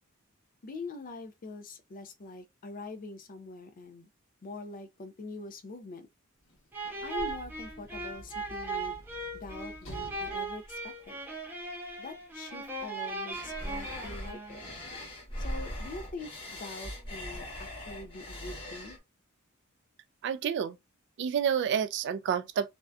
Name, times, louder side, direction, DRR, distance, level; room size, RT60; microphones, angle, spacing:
voice 1, 0.6-4.1 4.4-6.1 7.0-9.0 9.3-11.2 12.0-14.6 15.4-19.0, left 3 dB, 40° left, 0.4 m, -44 dB
Sliding door / Slam, 6.4-11.8 12.7-12.8, right 1 dB, 65° left, 1.1 m, -49 dB
sound 1, 6.7-14.8, right 3 dB, 10° right, 0.6 m, -38 dB
sound 2, 13.3-19.0, left 1 dB, 25° left, 1.0 m, -40 dB
voice 2, 20.2-20.8 21.2-22.7, right 8 dB, 55° right, 0.3 m, -29 dB
2.6 x 2.2 x 2.3 m
head